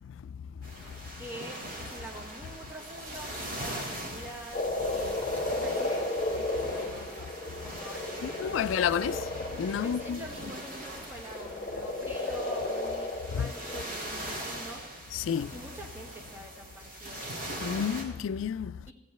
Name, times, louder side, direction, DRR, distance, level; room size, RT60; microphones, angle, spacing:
sound 1, 0.6-18.0, right 1 dB, 45° right, 1.8 m, -41 dB
voice 1, 1.2-6.1 6.3-8.9 9.8-14.8 15.5-17.4 18.9-19.0, right 1 dB, 10° right, 1.3 m, -46 dB
Frog, 4.5-10.4 11.3-13.8, left 2 dB, 45° left, 1.5 m, -33 dB
voice 2, 8.2-9.2 9.6-10.2 13.3-13.5 15.1-15.5 17.6-18.7, left 8 dB, 75° left, 0.3 m, -30 dB
16.5 x 7.7 x 3.1 m
head